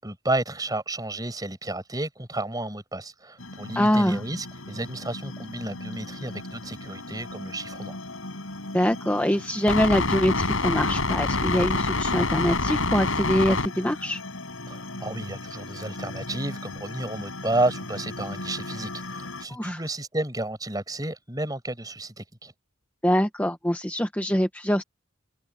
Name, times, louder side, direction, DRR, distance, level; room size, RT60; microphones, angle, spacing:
voice 1, 0.0-8.0 14.7-22.5, right 2 dB, 20° right, 6.5 m, -31 dB
sound 1, 3.4-19.5, left 3 dB, 85° left, 7.0 m, -31 dB
voice 2, 3.7-4.2 8.7-14.2 19.5-19.8 23.0-24.8, equal, 10° left, 1.3 m, -24 dB
head